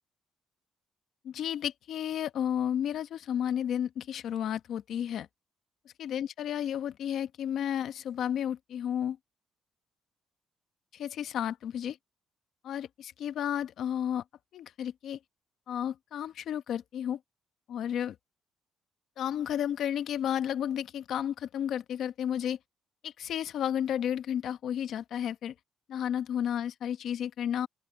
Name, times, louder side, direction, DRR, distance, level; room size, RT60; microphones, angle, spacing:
voice 1, 1.2-5.3 6.0-9.2 10.9-12.0 12.6-14.2 14.5-15.2 15.7-17.2 17.7-18.1 19.2-22.6 23.0-25.5 25.9-27.7, left 9 dB, 75° left, 1.3 m, -32 dB
open air
cardioid pair, 90°, 0 cm